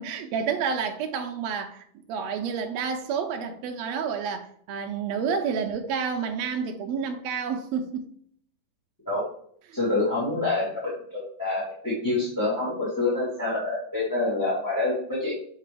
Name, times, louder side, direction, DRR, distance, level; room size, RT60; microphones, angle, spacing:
voice 1, 0.0-8.1 9.7-9.8, right 6 dB, 85° right, 1.5 m, -30 dB
voice 2, 9.7-15.3, left 2 dB, 10° left, 1.2 m, -27 dB
6.6 x 4.5 x 3.4 m
omnidirectional pair, 3.7 m